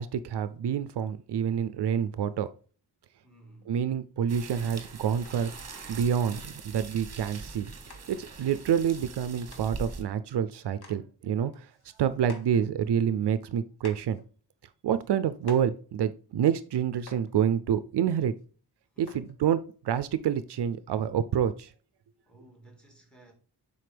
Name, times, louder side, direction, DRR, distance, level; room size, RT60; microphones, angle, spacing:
voice 1, 0.0-2.5 3.7-5.5 5.9-7.7 8.1-11.7 12.0-14.2 14.8-18.3 19.0-21.7, right 8 dB, 75° right, 0.5 m, -28 dB
voice 2, 3.2-3.7 18.9-19.2 22.3-23.3, right 2 dB, ahead, 1.9 m, -55 dB
sound 1, 4.3-10.0, right 4 dB, 40° right, 1.2 m, -42 dB
sound 2, 5.3-5.6 6.1-6.2 6.6-6.9 7.5-7.6 7.9-8.0 9.2-9.3 9.5-9.7 10.3-10.4 10.7-11.0 11.4-12.6 13.3-13.4 13.8-14.2 14.9-15.1 15.4-15.7 16.7-16.8 17.1-17.3 18.4-18.5 19.1-19.3 20.2-20.3, left 3 dB, 65° left, 1.6 m, -50 dB
7.6 x 5.6 x 3.4 m
wide cardioid pair, 175°, 42 cm